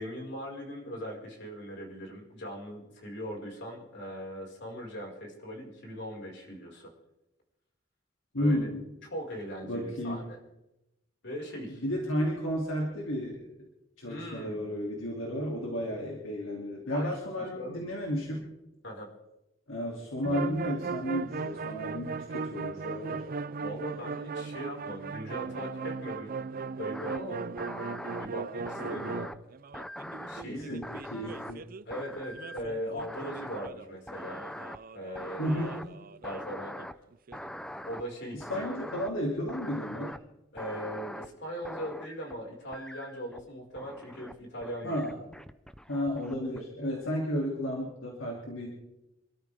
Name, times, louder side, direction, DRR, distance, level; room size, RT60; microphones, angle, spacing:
voice 1, 0.0-6.9 8.4-8.7 9.1-10.4 11.2-11.8 14.1-14.7 16.9-17.1 17.6-17.9 18.8-19.1 23.6-26.3 26.8-27.4 28.2-29.3 30.3-30.8 31.9-34.4 34.9-35.6 36.2-36.8 37.8-38.7 40.5-45.0, equal, 60° left, 0 dB, 5.2 m, -40 dB
voice 2, 8.3-8.8 9.6-10.2 11.8-13.4 14.0-18.4 19.7-23.2 28.8-29.2 30.5-31.6 35.4-35.8 38.3-40.1 44.8-45.2 45.9-48.8, equal, 85° left, -2 dB, 2.9 m, -33 dB
sound 1, 20.2-31.8 32.3-36.5 36.8-36.9 37.1-37.5 40.0-40.1, right 4 dB, 45° right, 0.5 m, -38 dB
sound 2, 26.9-27.2 27.6-28.3 28.7-29.4 29.7-31.6 31.9-32.7 33.0-33.7 34.1-34.8 35.2-35.9 36.2-36.9 37.3-38.0 38.4-39.1 39.5-40.2 40.6-41.3 41.7-42.3 42.7-43.4 43.8-44.3 44.6-46.6, equal, 5° left, 0.6 m, -42 dB
27.0 x 13.0 x 3.6 m, 0.92 s
head